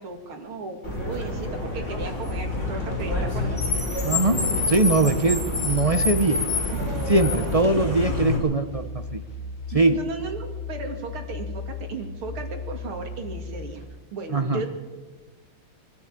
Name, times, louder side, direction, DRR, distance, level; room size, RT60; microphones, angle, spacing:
voice 1, 0.0-3.7 6.7-7.1 7.8-7.9 9.7-13.8 14.1-14.7, right 4 dB, 80° right, 4 dB, 3.3 m, -35 dB
Car, 0.8-8.4, left 2 dB, 35° left, 5.3 m, -27 dB
sound 1, 2.3-13.8, left 4 dB, 65° left, 4.6 m, -36 dB
voice 2, 4.0-6.4 7.1-9.2 9.7-10.0 14.3-14.7, right 2 dB, 45° right, 7 dB, 0.4 m, -22 dB
23.5 x 13.0 x 8.7 m, 1.3 s
omnidirectional pair, 2.3 m